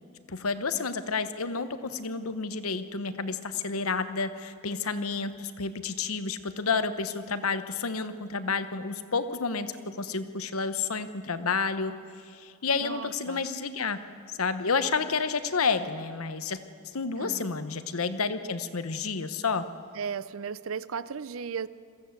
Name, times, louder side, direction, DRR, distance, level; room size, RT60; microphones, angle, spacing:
voice 1, 0.3-11.9 12.3-14.0 14.4-16.6 16.9-19.6, left 4 dB, 80° left, 11 dB, 1.0 m, -30 dB
voice 2, 12.8-13.4 17.2-17.4 20.0-21.7, right 6 dB, 70° right, 17 dB, 0.6 m, -35 dB
22.0 x 14.5 x 8.2 m, 2.2 s
head